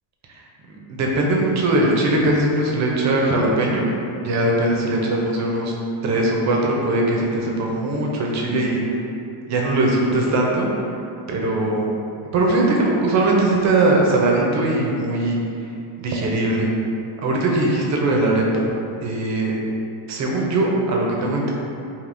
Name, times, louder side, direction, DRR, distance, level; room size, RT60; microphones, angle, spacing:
voice 1, 0.9-3.9 4.2-5.7 6.0-8.8 9.5-10.7 11.3-11.9 12.3-15.4 16.0-16.7 17.2-18.7 19.0-19.5 20.1-21.5, right 2 dB, 35° right, -2 dB, 0.6 m, -20 dB
3.5 x 2.6 x 2.5 m, 2.6 s
supercardioid pair, 110°, 47 cm